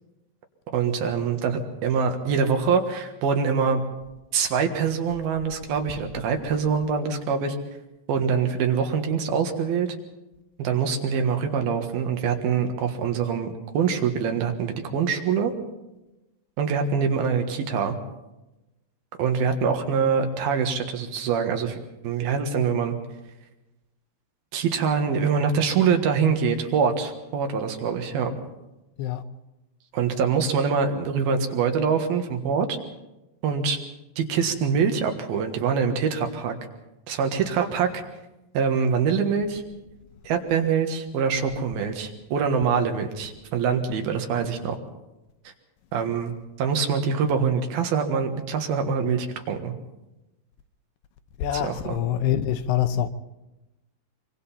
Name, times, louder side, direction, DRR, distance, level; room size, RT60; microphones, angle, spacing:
voice 1, 0.7-3.8 4.3-7.6 8.1-10.0 10.6-15.5 16.6-17.9 19.2-21.8 22.0-22.9 24.5-28.3 29.9-32.8 33.4-33.8 34.2-36.6 37.1-38.0 38.5-39.6 40.2-44.8 45.9-46.3 46.6-49.7 51.5-52.0, right 6 dB, 70° right, 3.3 m, -24 dB
voice 2, 51.4-53.1, left 10 dB, 80° left, 2.9 m, -25 dB
25.0 x 24.0 x 4.3 m
omnidirectional pair, 4.7 m